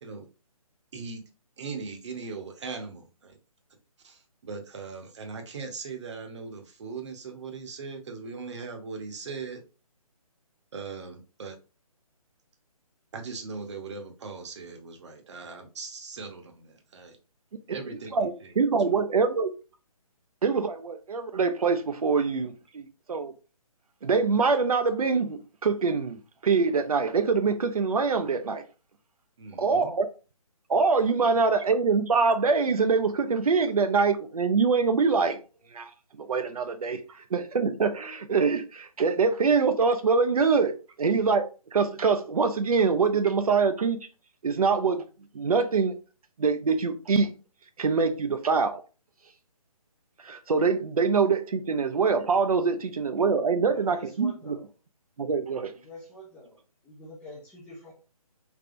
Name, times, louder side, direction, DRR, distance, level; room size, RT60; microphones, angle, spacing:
voice 1, 1.6-3.3 4.0-9.6 10.7-11.6 13.1-17.2 17.7-18.5 18.8-18.9 29.4-29.9, right 4 dB, 50° right, 0.9 m, -39 dB
voice 2, 18.1-19.5 20.4-23.3 24.0-28.6 29.6-30.1 30.7-35.4 35.7-35.9 36.2-37.0 37.3-44.0 44.4-45.0 45.3-45.9 46.4-47.3 47.8-48.8 50.2-54.6 55.2-55.7, right 5 dB, 70° right, 0.5 m, -24 dB
voice 3, 53.7-54.7 55.8-56.6 56.8-57.9, left 1 dB, 5° left, 0.4 m, -46 dB
3.5 x 3.2 x 2.5 m
figure-of-eight pair, 145°, 19 cm